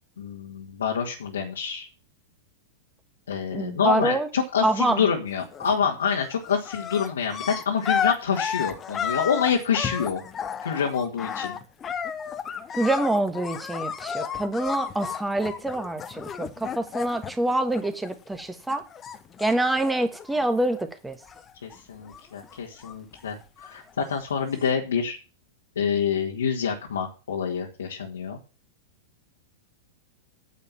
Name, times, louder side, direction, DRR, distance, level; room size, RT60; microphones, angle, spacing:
voice 1, 0.2-1.9 3.3-10.2 10.6-11.6 21.6-25.2 25.7-28.4, left 6 dB, 70° left, -1 dB, 1.8 m, -27 dB
voice 2, 3.5-4.3 4.6-5.0 12.8-18.8 19.4-21.2, right 1 dB, 5° right, 8 dB, 1.6 m, -26 dB
sound 1, 5.4-5.8 6.1-18.4 18.7-20.8 21.1-21.8 22.1-23.9 24.6-24.7, left 7 dB, 25° left, 1.0 m, -33 dB
9.7 x 7.4 x 5.9 m, 0.33 s
figure-of-eight pair, 95°, 0 cm